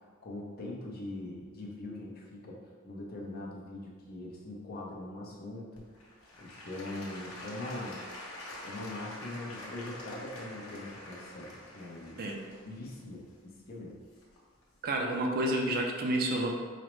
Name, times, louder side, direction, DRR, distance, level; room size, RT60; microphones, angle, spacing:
voice 1, 0.2-2.6 2.8-5.8 6.4-8.0 8.6-12.2 12.6-13.9, left 2 dB, 45° left, -2 dB, 0.6 m, -42 dB
Applause / Crowd, 5.7-14.6 15.2-15.3, left 1 dB, 80° left, 0.9 m, -46 dB
voice 2, 14.8-16.5, right 1 dB, 45° right, 1 dB, 0.4 m, -29 dB
4.9 x 2.1 x 3.0 m, 1.5 s
head